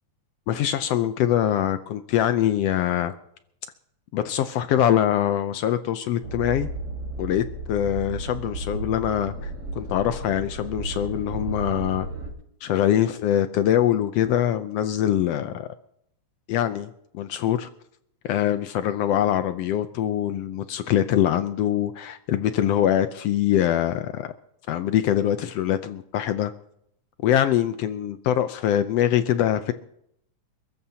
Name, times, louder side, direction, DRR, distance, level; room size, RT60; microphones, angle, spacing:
voice 1, 0.5-3.1 4.1-6.7 7.2-12.1 12.6-15.7 16.5-17.7 18.2-24.3 24.7-26.5 27.2-29.7, left 11 dB, 85° left, 10 dB, 1.4 m, -23 dB
sound 1, 6.2-12.3, right 2 dB, 45° right, 6.2 m, -33 dB
28.5 x 14.5 x 2.8 m, 0.73 s
omnidirectional pair, 3.6 m